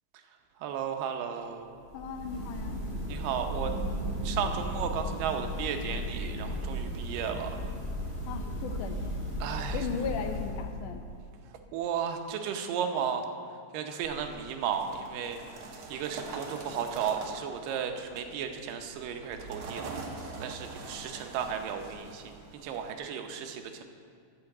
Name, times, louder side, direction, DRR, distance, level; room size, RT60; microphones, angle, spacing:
voice 1, 0.6-1.8 3.1-3.7 4.2-7.7 9.4-9.9 11.7-13.3 13.7-15.4 15.9-19.9 20.4-23.8, right 7 dB, 85° right, 5 dB, 2.5 m, -34 dB
sound 1, 1.8-11.0, equal, 5° left, 1.5 m, -35 dB
voice 2, 1.9-2.8 8.3-9.2 9.7-11.0, left 5 dB, 75° left, 6 dB, 2.2 m, -36 dB
sound 2, 14.0-22.9, right 3 dB, 60° right, 1.5 m, -44 dB
10.5 x 6.2 x 7.8 m, 2.2 s
omnidirectional pair, 3.8 m